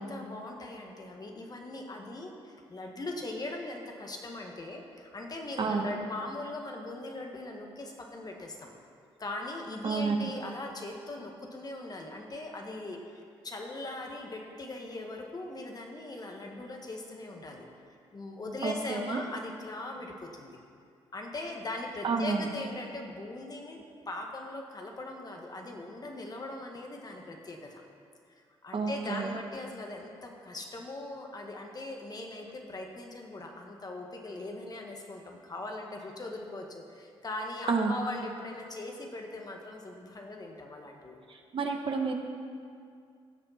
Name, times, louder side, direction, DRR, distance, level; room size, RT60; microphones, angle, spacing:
voice 1, 0.0-8.7 9.2-13.0 13.4-17.6 18.1-20.6 21.1-23.8 24.1-27.8 28.6-41.2, left 2 dB, 40° left, 1 dB, 1.7 m, -40 dB
voice 2, 9.8-10.3 18.6-19.2 22.0-22.5 28.7-29.4 37.7-37.9 41.3-42.1, right 4 dB, 55° right, 3 dB, 1.2 m, -30 dB
16.0 x 6.8 x 4.3 m, 2.3 s
cardioid pair, 65°, 11 cm